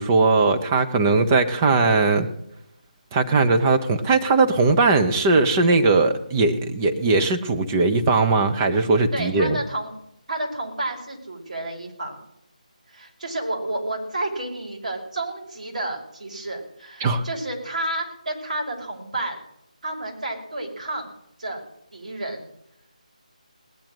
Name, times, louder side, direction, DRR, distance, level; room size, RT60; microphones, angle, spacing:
voice 1, 0.0-2.3 3.1-9.6 17.0-17.2, right 3 dB, 20° right, 7 dB, 1.1 m, -19 dB
voice 2, 9.1-9.9 10.3-12.2 12.9-19.4 19.8-21.1 21.4-21.6 21.9-22.5, right 1 dB, 65° right, 1 dB, 5.3 m, -30 dB
18.5 x 10.5 x 6.4 m, 0.79 s
figure-of-eight pair, 155°, 4 cm